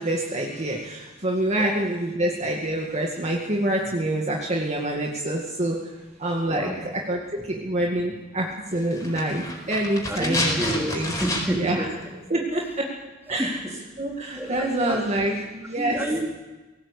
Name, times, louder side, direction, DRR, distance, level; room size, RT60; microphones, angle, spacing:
voice 1, 0.0-11.1 11.5-11.8 12.3-12.9 13.3-13.6 14.0-16.0, right 1 dB, 35° right, 0 dB, 2.1 m, -26 dB
voice 2, 6.4-6.8 10.1-11.9 13.4-13.6 14.3-15.0 15.8-16.2, right 1 dB, 10° right, 0 dB, 3.6 m, -29 dB
sound 1, 8.9-11.8 12.0-12.1, left 1 dB, 15° left, 4.6 m, -29 dB
18.0 x 18.0 x 8.3 m, 1.1 s
head